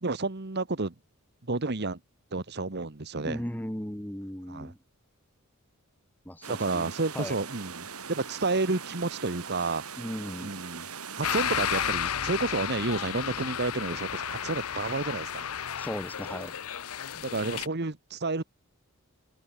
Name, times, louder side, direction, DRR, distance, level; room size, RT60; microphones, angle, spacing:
voice 1, 0.0-0.9 1.5-2.0 2.3-3.4 4.5-4.7 6.5-9.8 10.4-10.9 11.2-15.5 17.1-18.4, right 3 dB, 50° right, 1.2 m, -30 dB
voice 2, 3.2-4.8 6.2-6.9 7.1-7.4 9.6-9.7 10.0-10.5 15.8-16.6, equal, 10° left, 1.3 m, -36 dB
sound 1, 6.4-11.9, right 6 dB, 85° right, 6.2 m, -41 dB
sound 2, 11.2-17.7, left 9 dB, 80° left, 0.9 m, -33 dB
head